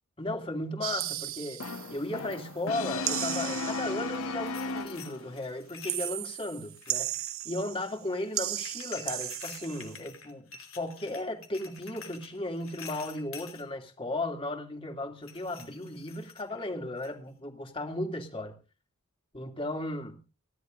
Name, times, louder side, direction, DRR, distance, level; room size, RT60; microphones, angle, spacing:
voice 1, 0.2-1.6 1.9-7.1 7.4-10.5 10.7-18.5 19.3-20.2, left 1 dB, 25° left, 2.6 m, -35 dB
sound 1, 0.8-2.5 3.0-4.2 5.9-8.0 8.3-9.9, right 14 dB, 70° right, 0.8 m, -35 dB
Brass instrument, 1.6-5.4, left 3 dB, 85° left, 1.4 m, -35 dB
sound 2, 4.1-6.2 6.7-7.4 8.6-13.6 15.2-16.7 17.0-17.3, left 6 dB, 70° left, 3.1 m, -48 dB
29.5 x 11.5 x 2.6 m
head